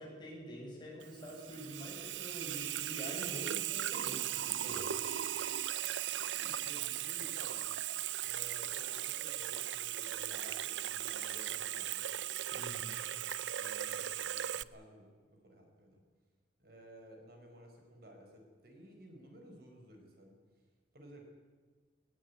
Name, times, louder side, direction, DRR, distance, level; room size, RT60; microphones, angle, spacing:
voice 1, 0.0-4.9 12.5-13.0, equal, 25° left, -3 dB, 8.0 m, -46 dB
Water tap faucet / Sink (filling or washing), 1.0-14.6, right 12 dB, 80° right, 0.6 m, -38 dB
voice 2, 6.3-7.7 8.2-12.1 13.5-16.0 16.6-20.4 20.9-21.3, equal, 55° right, 2 dB, 4.9 m, -55 dB
19.0 x 18.5 x 9.6 m, 1.5 s
head